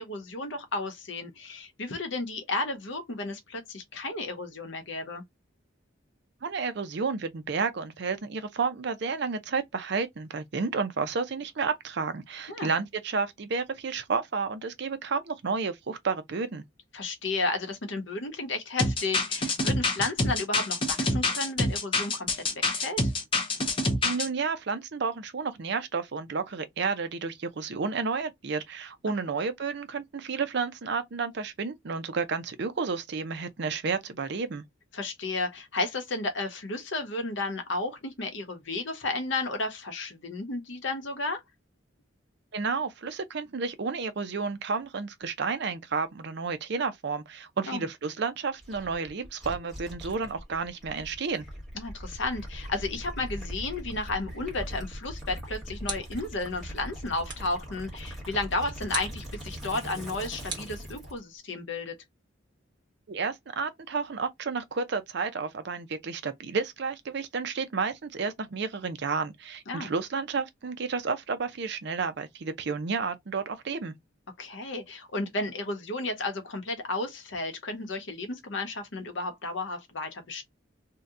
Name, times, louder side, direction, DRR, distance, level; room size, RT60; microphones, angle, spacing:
voice 1, 0.0-5.2 12.5-12.7 16.9-23.1 34.9-41.4 47.7-47.8 51.7-62.0 69.7-69.9 74.4-80.4, left 2 dB, 60° left, 0.8 m, -33 dB
voice 2, 6.4-16.6 24.0-34.6 42.5-51.4 63.1-73.9, right 4 dB, 55° right, 0.5 m, -31 dB
sound 1, 18.8-24.3, left 2 dB, 25° left, 0.6 m, -27 dB
Gurgling / Liquid, 48.6-61.2, equal, ahead, 1.3 m, -41 dB
sound 2, 55.8-56.4 57.3-57.6 58.9-59.3 60.5-61.4, right 5 dB, 20° right, 0.9 m, -39 dB
2.8 x 2.1 x 3.6 m
head